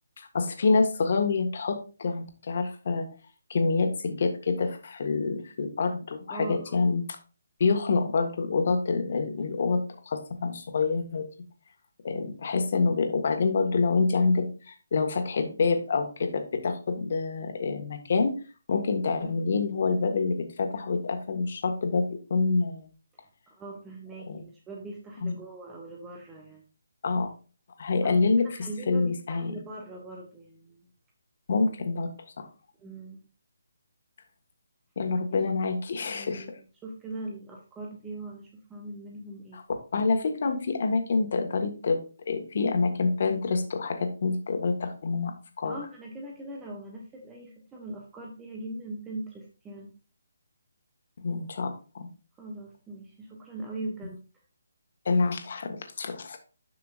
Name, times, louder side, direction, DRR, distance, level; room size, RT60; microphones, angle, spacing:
voice 1, 0.2-3.1 3.5-7.0 7.6-11.3 12.0-18.4 18.7-22.9 24.3-24.4 25.2-25.3 27.0-27.3 27.8-29.5 31.5-32.5 34.9-36.5 39.9-42.0 42.3-45.8 51.2-52.1 55.0-56.4, left 4 dB, 50° left, 5 dB, 1.7 m, -27 dB
voice 2, 6.3-6.9 19.2-19.4 23.5-26.6 28.0-30.8 32.8-33.2 36.0-36.5 36.8-39.6 45.6-49.9 52.4-54.2, right 2 dB, 10° right, 0 dB, 1.2 m, -41 dB
11.0 x 5.8 x 2.5 m, 0.35 s
figure-of-eight pair, 150°, 0 cm